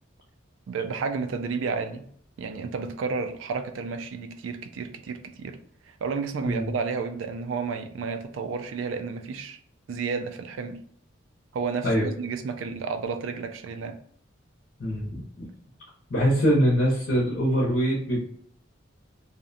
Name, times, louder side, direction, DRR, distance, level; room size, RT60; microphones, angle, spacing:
voice 1, 0.7-2.1 2.4-5.6 6.0-9.6 9.9-10.8 11.5-14.0, right 5 dB, 85° right, 7 dB, 0.3 m, -31 dB
voice 2, 14.8-15.2 16.1-18.2, equal, 65° left, -3 dB, 0.6 m, -23 dB
2.5 x 2.0 x 2.5 m, 0.63 s
head